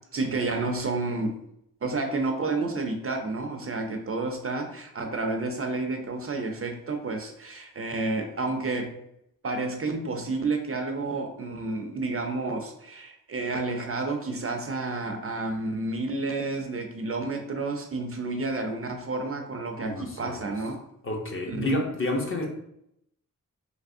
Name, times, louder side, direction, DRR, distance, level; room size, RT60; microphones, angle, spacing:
voice 1, 0.1-1.4 1.8-9.0 9.4-20.8 21.5-21.8, right 3 dB, 45° right, 4 dB, 0.4 m, -30 dB
voice 2, 19.8-20.5 21.0-22.5, left 2 dB, 40° left, 0 dB, 0.6 m, -30 dB
3.3 x 2.9 x 2.5 m, 0.78 s
wide cardioid pair, 145°, 33 cm